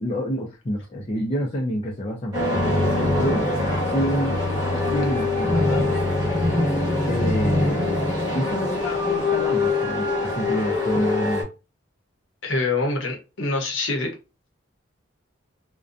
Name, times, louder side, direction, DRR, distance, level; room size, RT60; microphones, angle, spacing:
voice 1, 0.0-3.5 3.8-4.4 4.9-6.0 7.1-7.8 8.3-11.5, equal, 30° left, 0.5 m, -28 dB
sound 1, 2.3-11.4, left 2 dB, 20° right, 1.2 m, -23 dB
voice 2, 12.4-14.1, left 3 dB, 75° left, 0.8 m, -25 dB
2.5 x 2.2 x 2.4 m
head